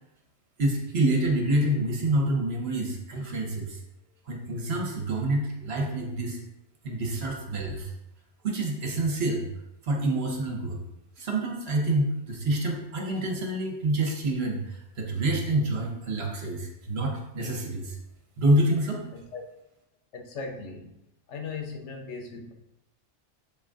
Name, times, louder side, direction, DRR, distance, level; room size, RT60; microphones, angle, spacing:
voice 1, 0.6-3.8 4.3-6.4 6.8-7.9 8.4-9.5 9.8-10.8 11.2-18.0 18.4-19.0, right 1 dB, 55° right, 1 dB, 1.4 m, -27 dB
voice 2, 19.1-19.4 20.1-20.9 21.3-22.5, left 4 dB, 70° left, 3 dB, 1.2 m, -38 dB
7.5 x 4.0 x 3.8 m, 0.86 s
omnidirectional pair, 1.3 m